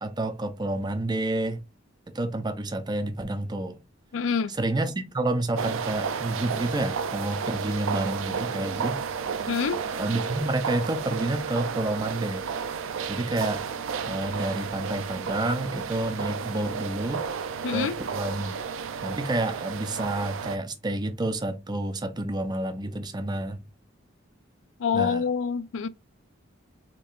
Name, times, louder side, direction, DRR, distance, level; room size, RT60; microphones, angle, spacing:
voice 1, 0.0-1.6 2.1-3.8 4.5-9.1 10.0-12.4 13.1-13.6 14.1-17.3 17.7-18.5 19.0-23.6 24.9-25.2, right 2 dB, 20° right, 0.5 m, -29 dB
voice 2, 4.1-4.5 9.5-9.8 17.6-18.0 24.8-25.9, left 6 dB, 70° left, 0.4 m, -26 dB
sound 1, 5.6-20.6, right 6 dB, 75° right, 0.5 m, -32 dB
4.4 x 3.0 x 2.4 m
head